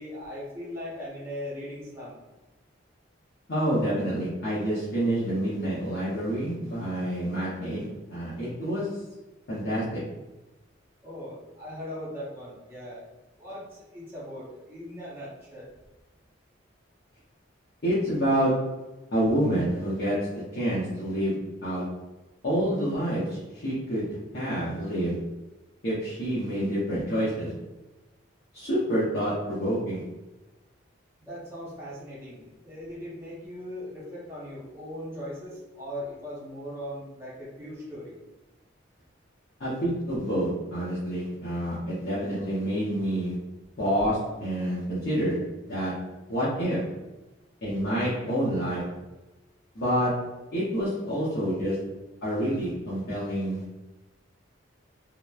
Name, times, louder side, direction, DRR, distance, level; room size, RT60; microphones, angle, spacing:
voice 1, 0.0-2.2 11.0-13.0 13.4-15.7 31.2-38.1, equal, 10° right, -9 dB, 0.6 m, -39 dB
voice 2, 3.5-8.9 9.5-10.0 17.8-18.7 19.1-21.9 22.4-25.2 25.8-27.5 28.5-30.0 39.6-43.3 43.8-46.9 47.6-48.9 49.8-51.8 52.2-53.8, equal, 55° left, -10 dB, 0.7 m, -28 dB
2.9 x 2.0 x 2.3 m, 1.1 s
head